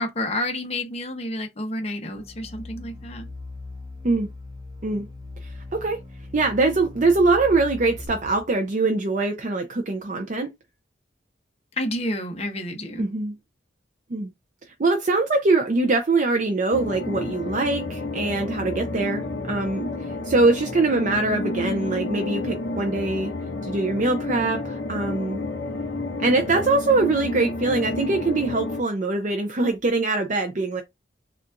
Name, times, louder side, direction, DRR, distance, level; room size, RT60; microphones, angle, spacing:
voice 1, 0.0-3.3 11.8-13.1, left 1 dB, 35° left, 0.8 m, -29 dB
sound 1, 2.1-8.1, left 3 dB, 20° right, 0.9 m, -39 dB
voice 2, 5.4-6.0 6.3-10.5 13.0-13.4 14.1-14.3 14.8-19.9 20.2-23.3 23.6-25.4 26.2-30.8, right 3 dB, 40° right, 0.5 m, -23 dB
sound 2, 16.7-28.8, left 2 dB, 75° left, 1.5 m, -30 dB
6.6 x 2.4 x 2.4 m
head